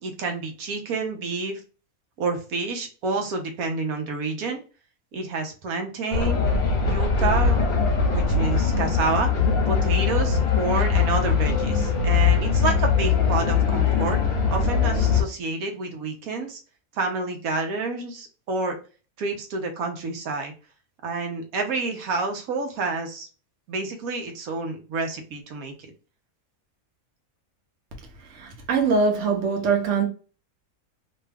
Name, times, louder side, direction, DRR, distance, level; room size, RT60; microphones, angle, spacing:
voice 1, 0.0-1.6 2.2-4.6 5.1-6.4 6.8-7.6 8.1-9.3 9.7-14.2 14.5-16.6 16.9-18.8 19.2-20.5 21.0-23.3 23.7-25.7, right 3 dB, 90° right, 1.2 m, -28 dB
sound 1, 6.1-15.2, left 6 dB, 50° left, 1.0 m, -21 dB
voice 2, 28.4-30.0, right 4 dB, 65° right, 1.1 m, -22 dB
3.0 x 2.3 x 3.3 m
omnidirectional pair, 1.5 m